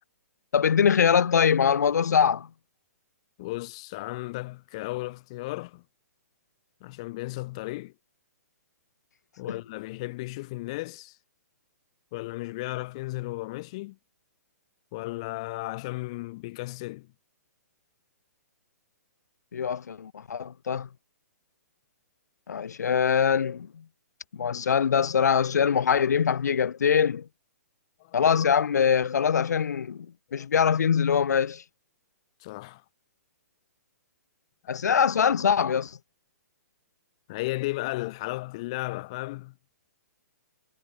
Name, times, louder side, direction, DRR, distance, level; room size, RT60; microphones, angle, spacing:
voice 1, 0.5-2.5 9.5-9.6 19.5-20.9 22.5-23.7 24.3-27.2 28.1-30.1 30.3-31.6 34.7-36.0, left 7 dB, 85° left, 0.8 m, -23 dB
voice 2, 3.4-5.8 6.8-7.9 9.4-11.2 12.1-14.0 14.9-17.1 28.0-28.2 30.3-30.5 32.4-32.8 34.7-34.8 37.3-39.5, left 21 dB, 20° left, 0.5 m, -35 dB
hypercardioid pair, 175°, 9 cm